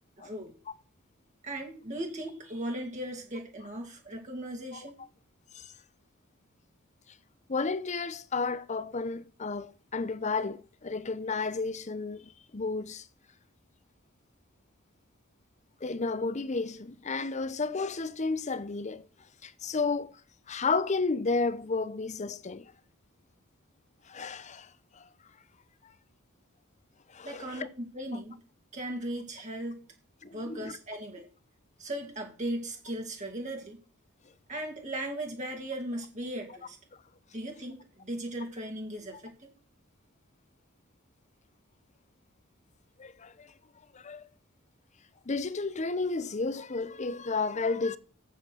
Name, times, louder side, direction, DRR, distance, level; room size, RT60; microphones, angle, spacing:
voice 1, 0.2-0.5 1.4-5.0 27.2-28.4 28.7-29.8 30.2-31.3 31.8-33.8 34.5-36.8 37.3-39.5, right 1 dB, 35° right, 2.5 m, -37 dB
voice 2, 7.5-13.1 15.8-19.1 19.4-20.2 20.5-22.7 24.1-25.1 25.8-25.9 27.1-27.7 30.2-30.8 43.0-43.5 43.9-44.3 45.3-48.0, left 4 dB, 35° left, 0.7 m, -32 dB
8.4 x 8.2 x 6.4 m
head